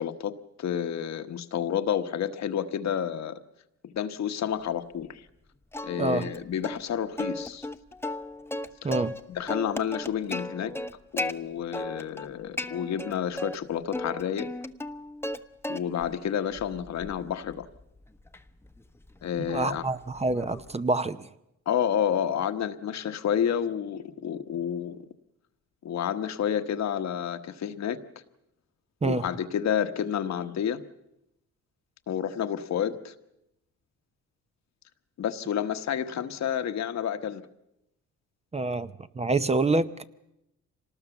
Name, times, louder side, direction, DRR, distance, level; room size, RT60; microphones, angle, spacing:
voice 1, 0.0-3.4 3.8-5.2 5.8-7.7 8.8-8.9 9.3-10.7 11.1-14.5 15.7-17.7 19.2-19.9 21.7-25.0 25.8-28.0 29.0-30.8 32.1-33.1 35.2-37.4, left 9 dB, 60° left, 9 dB, 1.3 m, -30 dB
Plucked string instrument, 5.7-6.4 6.6-6.8 7.2-9.2 9.5-11.3 11.7-12.3 12.6-13.6 13.9-15.4 15.6-16.1 16.6-20.8, left 1 dB, 10° left, 1.0 m, -35 dB
voice 2, 6.0-6.3 8.8-9.1 19.4-21.3 29.0-29.3 38.5-40.0, right 3 dB, 20° right, 12 dB, 0.8 m, -27 dB
25.5 x 19.0 x 7.1 m, 0.88 s
cardioid pair, 90°, 30 cm